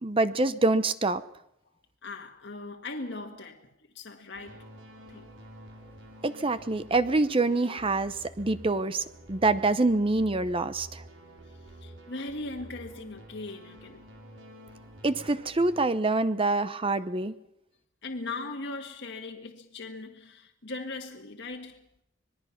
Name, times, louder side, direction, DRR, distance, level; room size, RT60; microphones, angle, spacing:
voice 1, 0.0-1.2 6.2-11.0 15.0-17.3, right 2 dB, 25° right, 0.7 m, -26 dB
voice 2, 2.0-3.6 3.9-4.6 5.1-5.3 11.8-14.0 18.0-21.9, left 3 dB, 60° left, 1.6 m, -39 dB
sound 1, 4.3-15.9, right 1 dB, 70° right, 5.0 m, -49 dB
25.5 x 21.0 x 5.8 m
head